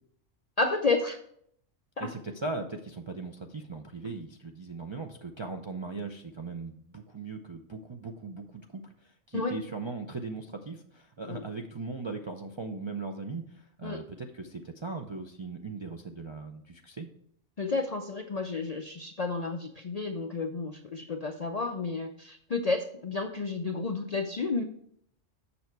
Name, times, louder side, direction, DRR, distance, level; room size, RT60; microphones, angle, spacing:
voice 1, 0.6-1.2 2.0-2.1 9.3-9.6 11.3-11.4 13.8-14.0 17.6-24.6, left 3 dB, 55° left, 5 dB, 0.4 m, -31 dB
voice 2, 2.0-17.1, right 3 dB, 40° right, 2 dB, 0.4 m, -39 dB
7.0 x 6.3 x 4.6 m, 0.67 s
omnidirectional pair, 1.3 m